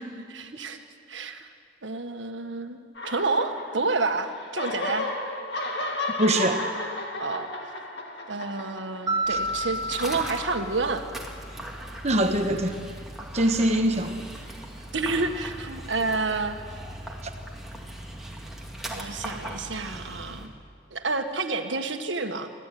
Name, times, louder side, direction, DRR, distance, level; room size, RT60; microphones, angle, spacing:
voice 1, 0.1-0.8 1.1-1.5 1.8-5.1 7.2-7.7 8.3-11.0 14.9-16.6 18.9-20.5 20.9-22.5, right 3 dB, 80° right, 6 dB, 1.7 m, -29 dB
sound 1, 3.0-4.1 4.4-9.3, left 2 dB, 65° left, 2.4 m, -33 dB
voice 2, 6.2-6.6 9.3-9.4 12.0-12.8 13.3-14.2, right 1 dB, 35° right, 5 dB, 1.2 m, -23 dB
Mallet percussion, 9.1-11.4, right 1 dB, 20° right, 2.0 m, -31 dB
Dog, 9.2-20.5, right 1 dB, ahead, 2.6 m, -39 dB
24.5 x 15.5 x 9.4 m, 2.2 s
head